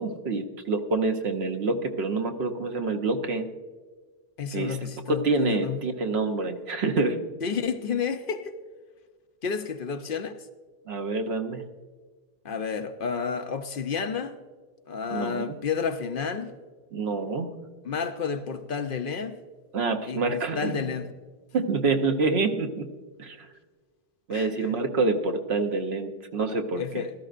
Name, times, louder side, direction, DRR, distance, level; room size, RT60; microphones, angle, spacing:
voice 1, 0.0-3.5 4.5-7.2 10.9-11.6 15.1-15.6 16.9-17.5 19.7-20.8 21.5-22.9 23.2-23.5 24.3-26.8, right 3 dB, 80° right, 1.1 m, -27 dB
voice 2, 4.4-5.8 7.4-8.5 9.4-10.5 12.4-14.4 14.9-16.5 17.8-19.3 20.1-21.1 24.3-24.7 26.7-27.1, left 6 dB, 60° left, 0.8 m, -31 dB
15.5 x 13.0 x 2.5 m
omnidirectional pair, 1.1 m